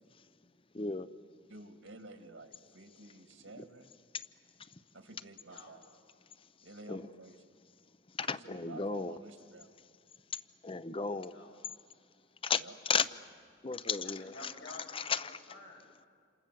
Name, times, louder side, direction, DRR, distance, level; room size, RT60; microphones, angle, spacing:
voice 1, 0.7-1.1 3.6-3.7 6.9-7.1 8.2-9.2 10.6-11.3 12.4-13.1 13.6-14.3 14.9-15.4, left 5 dB, 30° left, 15 dB, 0.7 m, -34 dB
voice 2, 1.5-3.9 4.9-5.8 6.6-7.4 8.3-9.7 12.6-12.7, right 2 dB, 75° right, 7 dB, 2.1 m, -51 dB
voice 3, 5.5-5.9 11.2-11.6 14.0-16.1, left 2 dB, 90° left, 1 dB, 6.4 m, -52 dB
28.5 x 27.5 x 7.6 m, 2.3 s
head